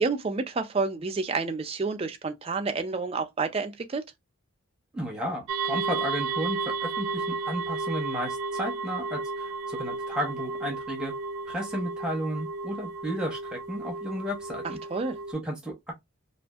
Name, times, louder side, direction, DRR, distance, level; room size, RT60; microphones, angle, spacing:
voice 1, 0.0-4.0 14.9-15.2, right 4 dB, 25° right, 0.3 m, -29 dB
voice 2, 4.9-11.1 11.5-14.8 15.3-15.9, equal, 5° right, 0.7 m, -33 dB
sound 1, 5.5-15.3, right 4 dB, 85° right, 0.5 m, -33 dB
2.6 x 2.4 x 2.3 m
head